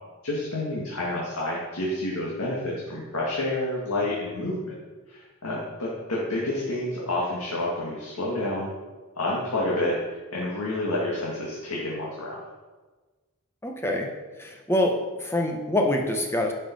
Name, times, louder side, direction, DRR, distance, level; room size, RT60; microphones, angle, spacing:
voice 1, 0.2-4.7 5.1-8.7 9.2-10.0 10.3-12.4, left 1 dB, 80° left, -5 dB, 2.0 m, -29 dB
voice 2, 13.6-14.1 14.4-16.5, left 1 dB, 10° left, 2 dB, 1.0 m, -25 dB
10.5 x 5.5 x 5.4 m, 1.3 s
head